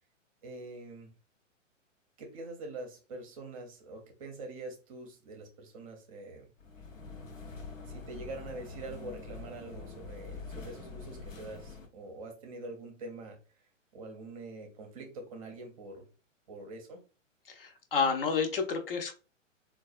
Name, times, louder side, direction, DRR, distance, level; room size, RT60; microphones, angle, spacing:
voice 1, 0.4-1.1 2.2-6.5 7.9-13.4 13.9-16.1 16.5-17.0, right 2 dB, 30° right, 0.6 m, -44 dB
sound 1, 6.6-11.9, left 4 dB, 85° left, 0.8 m, -45 dB
voice 2, 17.5-19.1, left 5 dB, 45° left, 0.6 m, -30 dB
3.9 x 2.3 x 2.4 m
figure-of-eight pair, 115°, 38 cm